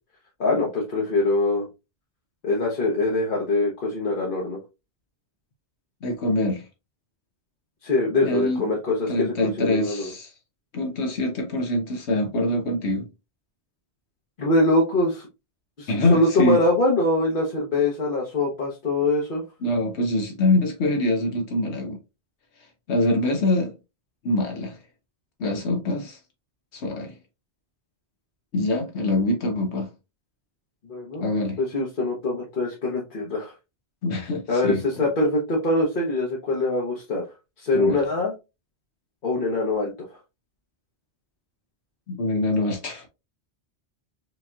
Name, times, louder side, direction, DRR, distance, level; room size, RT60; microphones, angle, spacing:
voice 1, 0.4-1.7 2.4-4.6 7.8-10.1 14.4-15.3 15.8-19.4 30.9-31.2 31.6-33.5 34.5-37.2 37.6-38.3 39.2-39.9, left 2 dB, 50° left, 1.1 m, -23 dB
voice 2, 6.0-6.7 8.2-8.6 9.1-10.3 10.7-13.1 15.9-16.6 19.6-22.0 22.9-23.7 24.2-24.8 25.4-26.2 26.7-27.2 28.5-29.9 31.2-31.6 34.0-35.1 37.7-38.0 42.1-43.1, left 1 dB, 80° left, 1.1 m, -24 dB
5.0 x 2.8 x 2.3 m
omnidirectional pair, 1.1 m